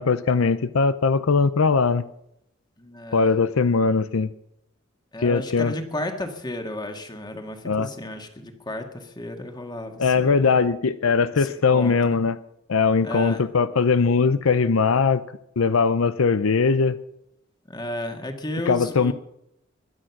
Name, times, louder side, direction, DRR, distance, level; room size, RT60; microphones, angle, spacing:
voice 1, 0.0-2.0 3.1-4.3 5.2-5.7 7.6-7.9 10.0-12.4 12.7-15.2 15.6-17.0 18.7-19.1, left 5 dB, 85° left, 14 dB, 0.6 m, -20 dB
voice 2, 2.8-3.4 5.1-10.5 11.3-12.0 13.0-13.4 17.7-19.1, left 1 dB, 20° left, 5 dB, 1.9 m, -33 dB
22.5 x 8.9 x 6.0 m, 0.79 s
head